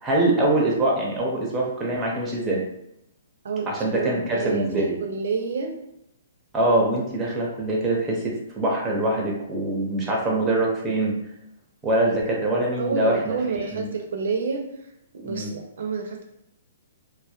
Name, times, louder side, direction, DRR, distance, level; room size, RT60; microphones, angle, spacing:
voice 1, 0.0-2.6 3.7-5.0 6.5-11.1 11.8-13.9 15.2-15.5, right 1 dB, 15° right, -2 dB, 0.6 m, -24 dB
voice 2, 3.4-5.8 12.8-14.6 15.1-16.2, right 5 dB, 70° right, 3 dB, 0.4 m, -29 dB
2.1 x 2.1 x 2.7 m, 0.80 s
hypercardioid pair, 150°, 0 cm